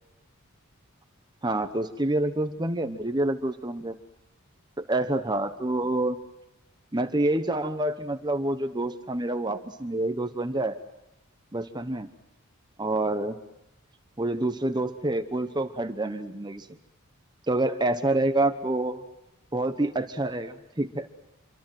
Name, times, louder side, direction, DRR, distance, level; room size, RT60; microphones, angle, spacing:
voice 1, 1.4-4.0 4.8-6.2 6.9-10.8 11.5-12.1 12.8-13.4 14.2-16.7 17.5-19.0 19.5-21.1, right 2 dB, 20° right, 9 dB, 0.9 m, -27 dB
27.0 x 24.0 x 7.6 m, 0.90 s
head